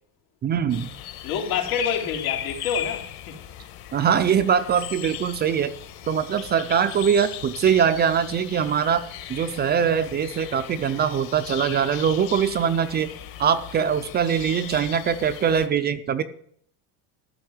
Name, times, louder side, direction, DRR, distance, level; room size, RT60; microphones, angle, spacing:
voice 1, 0.4-0.9 3.9-5.7 6.1-9.0 9.3-13.1 13.4-16.2, right 7 dB, 25° right, 0.4 m, -22 dB
sound 1, 0.7-15.7, left 11 dB, 50° left, 1.7 m, -37 dB
voice 2, 1.2-3.4, left 7 dB, 90° left, 3.8 m, -28 dB
14.0 x 6.8 x 9.6 m
cardioid pair, 165°, 45 cm